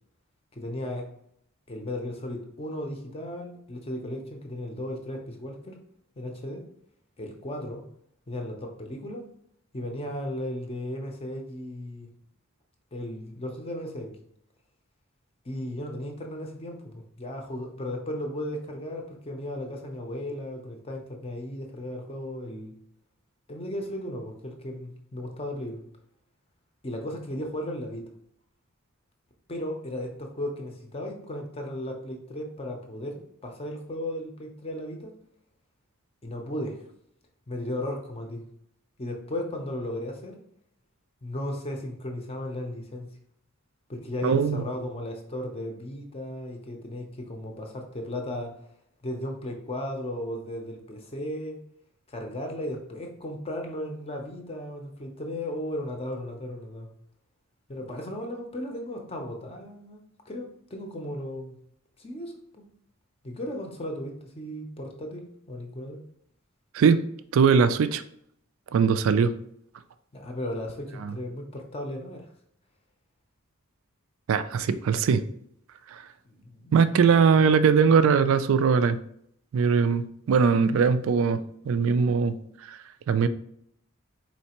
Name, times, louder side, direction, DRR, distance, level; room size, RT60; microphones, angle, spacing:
voice 1, 0.6-1.1 1.7-5.8 6.2-6.7 7.2-7.8 8.3-9.2 9.7-12.1 12.9-14.2 15.4-22.7 23.5-25.8 26.8-28.1 29.5-35.1 36.2-36.8 37.5-38.4 39.0-40.4 41.2-43.1 43.9-48.5 49.0-51.6 52.1-56.9 57.7-61.6 62.0-62.7 63.2-66.0 70.1-72.3 76.2-77.1, left 1 dB, 25° left, 2 dB, 0.6 m, -35 dB
voice 2, 44.2-44.6 66.7-67.0 67.3-68.0 68.7-69.3 71.0-71.1 74.3-75.2 75.9-76.0 76.7-79.0 79.5-81.4 81.7-82.4 82.6-82.8 83.1-83.3, right 6 dB, 65° right, 12 dB, 0.3 m, -21 dB
4.3 x 3.2 x 2.9 m, 0.70 s
head